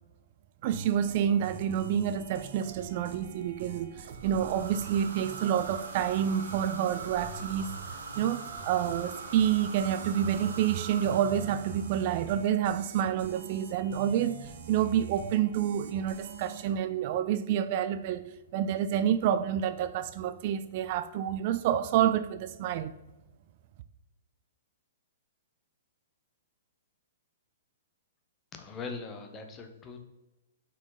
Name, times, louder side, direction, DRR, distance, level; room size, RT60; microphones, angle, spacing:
voice 1, 0.6-7.8 8.2-22.9, right 9 dB, 45° right, 0.3 m, -28 dB
sound 1, 0.7-16.7, right 5 dB, 60° right, 0.8 m, -45 dB
sound 2, 4.1-12.6, right 4 dB, 80° right, 1.3 m, -43 dB
voice 2, 28.5-30.0, left 4 dB, 20° left, 0.8 m, -41 dB
5.7 x 4.5 x 4.0 m
hypercardioid pair, 145°, 0 cm